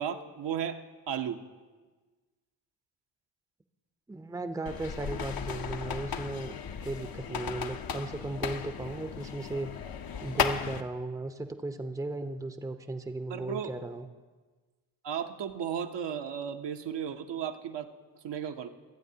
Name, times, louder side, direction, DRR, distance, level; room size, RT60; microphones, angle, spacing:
voice 1, 0.0-1.4 13.3-13.7 15.0-17.9 18.2-18.7, right 8 dB, 55° right, 5 dB, 0.9 m, -34 dB
voice 2, 4.1-6.6 6.8-9.7 10.2-14.1, right 2 dB, 5° right, 8 dB, 0.7 m, -36 dB
sound 1, 4.7-10.8, left 7 dB, 45° left, 0.8 m, -35 dB
25.5 x 8.7 x 2.8 m, 1.3 s
supercardioid pair, 50°, 50 cm